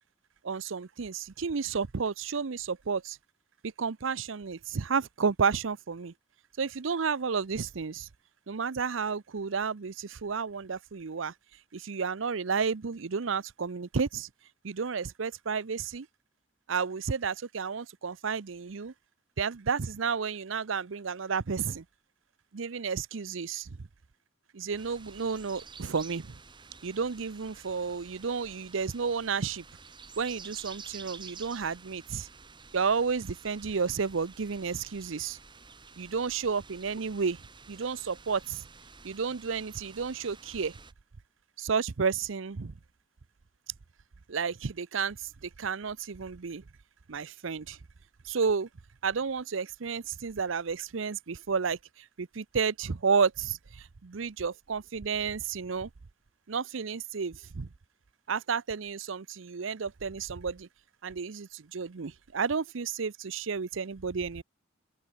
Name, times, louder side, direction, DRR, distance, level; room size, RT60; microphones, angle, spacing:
voice 1, 0.4-3.2 3.6-6.1 6.6-8.1 8.5-11.3 11.7-14.3 14.6-16.1 16.7-18.9 19.4-21.8 22.5-23.7 24.5-26.3 26.8-29.6 30.2-32.3 32.7-35.4 36.0-37.4 37.7-38.6 39.0-40.7 41.6-42.7 44.3-46.6 47.1-47.8 48.2-48.7 49.0-55.9 56.5-57.7 58.3-60.7 61.0-64.4, right 5 dB, 75° right, 0.7 m, -31 dB
sound 1, 24.8-40.9, right 5 dB, 25° right, 1.7 m, -50 dB
head